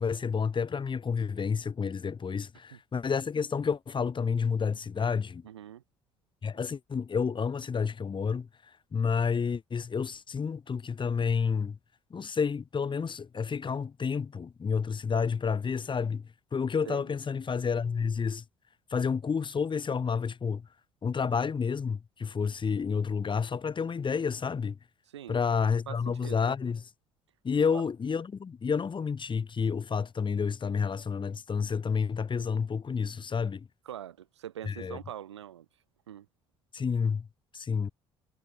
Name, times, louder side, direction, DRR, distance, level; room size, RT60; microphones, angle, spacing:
voice 1, 0.0-5.4 6.4-8.5 8.9-11.8 12.1-18.4 18.9-20.7 21.0-24.8 25.3-26.8 27.4-33.7 34.7-35.0 36.7-37.3 37.5-37.9, left 6 dB, 35° left, 2.8 m, -30 dB
voice 2, 5.4-5.8 16.9-17.1 25.1-25.4 25.9-26.4 27.6-27.8 33.8-35.7 36.1-36.3, right 11 dB, 85° right, 2.0 m, -43 dB
figure-of-eight pair, 50°, 14 cm